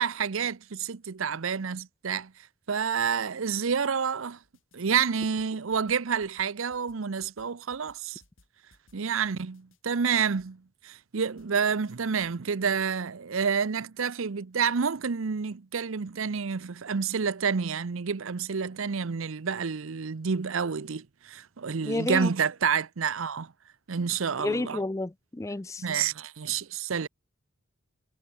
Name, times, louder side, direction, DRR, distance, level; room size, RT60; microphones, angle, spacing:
voice 1, 0.0-2.3 2.7-4.4 4.7-8.2 8.9-23.5 23.9-24.8 25.8-27.1, right 6 dB, 70° right, 0.7 m, -29 dB
sound 1, 4.4-5.0 5.2-10.5 11.4-12.3, left 2 dB, 65° left, 7.4 m, -62 dB
voice 2, 21.8-22.3 24.4-25.8, left 2 dB, 15° left, 0.4 m, -30 dB
head